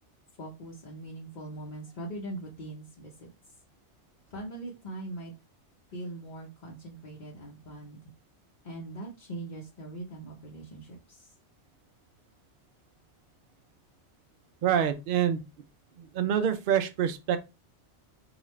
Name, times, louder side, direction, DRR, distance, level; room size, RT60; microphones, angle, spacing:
voice 1, 0.4-3.3 4.3-5.3 5.9-8.1 8.6-11.3, right 2 dB, 45° left, 0.9 m, -41 dB
voice 2, 14.6-15.4 16.0-17.4, right 9 dB, 60° right, 0.6 m, -26 dB
4.9 x 2.4 x 3.1 m
omnidirectional pair, 1.2 m